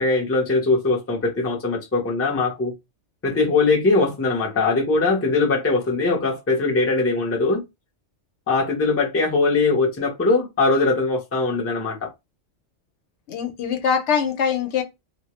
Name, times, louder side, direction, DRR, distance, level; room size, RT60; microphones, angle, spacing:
voice 1, 0.0-2.7 3.2-7.6 8.5-12.1, left 3 dB, 20° left, 0.5 m, -21 dB
voice 2, 13.3-14.8, left 7 dB, 75° left, 0.9 m, -23 dB
2.2 x 2.0 x 2.9 m
omnidirectional pair, 1.2 m